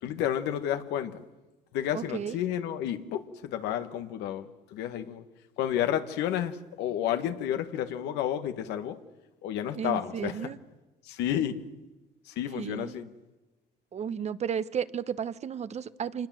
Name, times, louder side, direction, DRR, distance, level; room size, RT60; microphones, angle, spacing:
voice 1, 0.0-1.2 1.7-5.3 5.6-9.0 9.4-10.5 11.0-11.6 12.3-13.1, left 10 dB, 90° left, 1.8 m, -31 dB
voice 2, 1.9-2.4 9.7-10.6 12.5-13.1 13.9-16.3, right 7 dB, 40° right, 1.0 m, -33 dB
25.5 x 20.0 x 7.7 m
cardioid pair, 110°, 17 cm